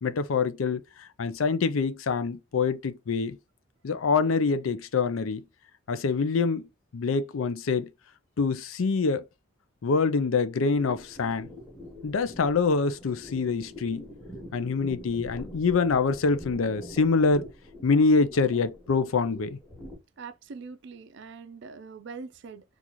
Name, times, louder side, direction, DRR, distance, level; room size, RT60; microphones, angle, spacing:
voice 1, 0.0-3.4 3.8-5.4 5.9-6.7 6.9-7.9 8.4-9.2 9.8-11.5 12.0-14.1 14.5-17.5 17.8-19.6, left 4 dB, 80° left, 0.5 m, -25 dB
sound 1, 10.7-20.0, equal, 10° left, 1.0 m, -45 dB
voice 2, 20.2-22.6, right 5 dB, 60° right, 0.4 m, -42 dB
3.8 x 2.4 x 2.9 m
head